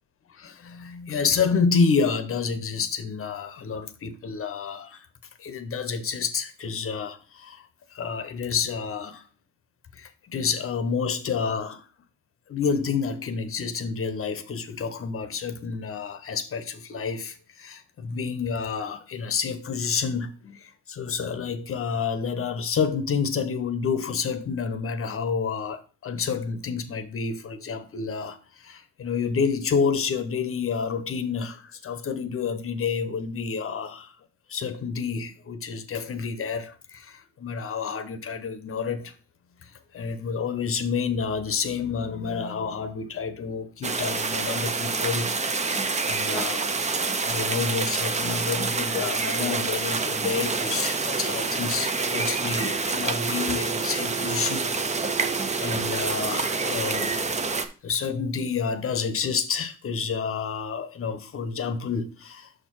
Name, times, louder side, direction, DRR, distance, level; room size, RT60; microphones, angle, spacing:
voice 1, 0.3-5.1 5.4-7.7 7.9-9.3 9.9-11.8 12.5-34.1 34.5-39.1 39.6-46.7 47.1-54.7 55.1-57.2 57.8-62.5, left 5 dB, 45° left, 0.8 m, -29 dB
sound 1, 43.8-57.7, right 4 dB, 25° right, 0.6 m, -27 dB
6.3 x 4.5 x 4.6 m
cardioid pair, 90°, 30 cm